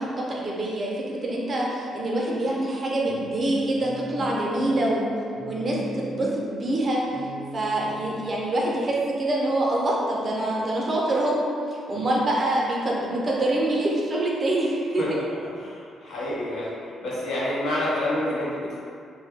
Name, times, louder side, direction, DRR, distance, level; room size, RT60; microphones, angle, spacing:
voice 1, 0.0-5.1 5.5-7.2 7.5-11.3 11.7-15.2, right 1 dB, 35° right, -3 dB, 0.6 m, -25 dB
sound 1, 3.0-8.5, left 1 dB, 10° left, 0.7 m, -39 dB
voice 2, 15.6-16.7 17.0-18.8, left 1 dB, 75° left, -7 dB, 0.7 m, -28 dB
2.2 x 2.0 x 3.4 m, 2.3 s
cardioid pair, 90°, 0 cm